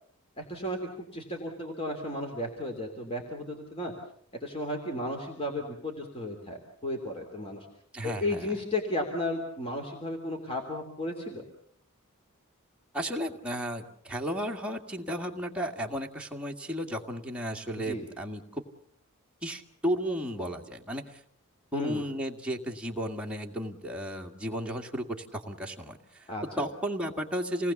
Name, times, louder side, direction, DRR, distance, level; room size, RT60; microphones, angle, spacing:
voice 1, 0.4-0.8 1.1-3.9 4.4-7.7 8.0-11.5 17.8-18.0 21.7-22.1 26.3-26.6, left 1 dB, 25° left, 2 dB, 3.1 m, -34 dB
voice 2, 7.9-8.5 12.9-18.6 19.4-21.2 21.7-26.2 26.6-27.7, equal, 5° right, 0 dB, 2.0 m, -34 dB
28.0 x 19.0 x 7.2 m, 0.64 s
head